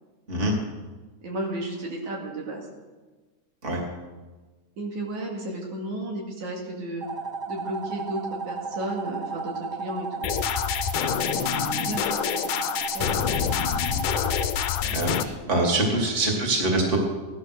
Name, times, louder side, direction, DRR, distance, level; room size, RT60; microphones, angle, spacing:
voice 1, 1.2-2.7 4.8-7.1 7.5-10.3 11.1-12.5 12.9-14.1 14.8-15.0, right 1 dB, 65° right, -1 dB, 3.6 m, -34 dB
sound 1, 7.0-14.5, right 4 dB, 50° right, 1.4 m, -34 dB
sound 2, 10.2-15.2, left 9 dB, 80° left, 2.3 m, -26 dB
voice 2, 14.9-17.0, right 2 dB, 20° right, 0 dB, 3.1 m, -24 dB
17.5 x 12.5 x 6.4 m, 1.3 s
omnidirectional pair, 3.7 m